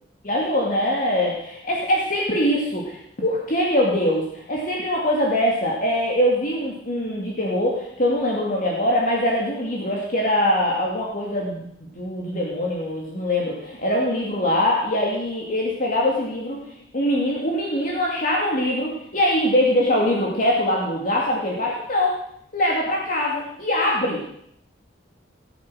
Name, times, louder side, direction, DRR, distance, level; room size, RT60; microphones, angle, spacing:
voice 1, 0.2-11.7 12.0-16.6 16.9-22.1 22.5-24.2, left 1 dB, 45° left, -3 dB, 2.6 m, -23 dB
18.5 x 9.0 x 6.4 m, 0.73 s
head